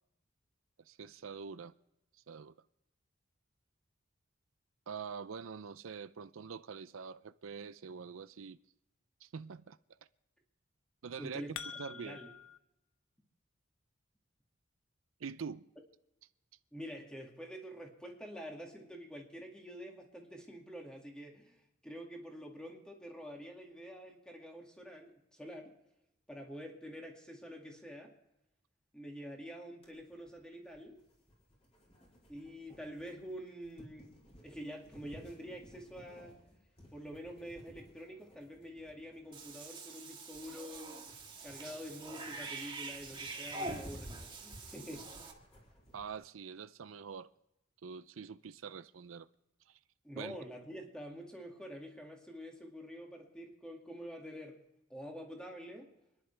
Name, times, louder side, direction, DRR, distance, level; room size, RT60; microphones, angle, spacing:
voice 1, 0.9-1.7 2.3-2.6 4.9-8.6 9.2-9.8 11.0-12.2 15.2-15.6 45.9-47.3 47.8-49.3 49.7-49.8 50.1-50.4, right 6 dB, 85° right, 0.5 m, -45 dB
sound 1, 11.1-12.6, left 7 dB, 75° left, 0.8 m, -46 dB
voice 2, 11.2-12.3 16.7-21.6 21.8-25.8 26.3-28.2 28.9-31.0 32.3-34.2 34.4-36.3 36.9-41.0 41.4-45.1 50.0-54.6 54.9-55.9, equal, 5° left, 2.3 m, -47 dB
sound 2, 29.8-46.1, equal, 35° left, 5.2 m, -56 dB
Cat / Bathtub (filling or washing), 39.3-45.3, right 3 dB, 25° right, 1.7 m, -45 dB
28.5 x 11.0 x 3.4 m
head